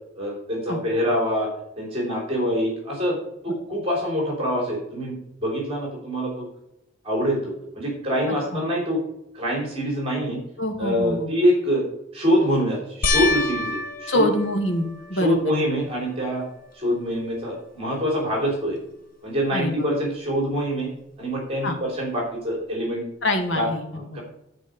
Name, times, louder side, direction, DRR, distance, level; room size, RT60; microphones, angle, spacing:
voice 1, 0.2-1.5 1.8-3.2 3.4-6.5 7.0-9.0 9.3-10.4 10.8-11.8 12.1-14.3 15.1-16.4 16.7-18.8 19.2-20.9 21.2-23.0 23.6-24.2, equal, 30° right, -2 dB, 3.7 m, -25 dB
voice 2, 10.6-11.3 14.1-15.4 19.5-19.9 21.6-21.8 23.2-24.0, left 1 dB, 65° left, 4 dB, 2.1 m, -25 dB
sound 1, 13.0-15.6 16.2-16.8 17.2-17.3 20.5-20.6, left 3 dB, 45° left, 1.2 m, -28 dB
12.0 x 5.0 x 7.0 m, 0.80 s
head